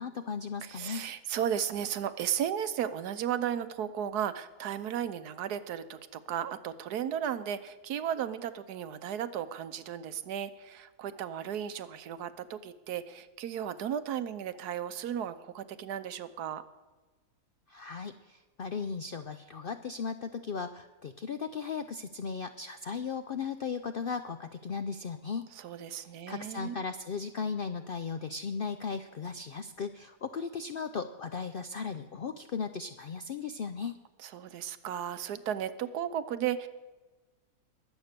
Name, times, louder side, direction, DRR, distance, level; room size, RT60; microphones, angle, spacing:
voice 1, 0.0-1.1 17.7-25.4 26.3-34.0, left 5 dB, 70° left, 9 dB, 0.5 m, -36 dB
voice 2, 0.6-16.6 25.5-26.8 34.2-36.7, right 9 dB, 90° right, 12 dB, 1.3 m, -35 dB
21.5 x 8.1 x 6.8 m, 1.2 s
omnidirectional pair, 1.6 m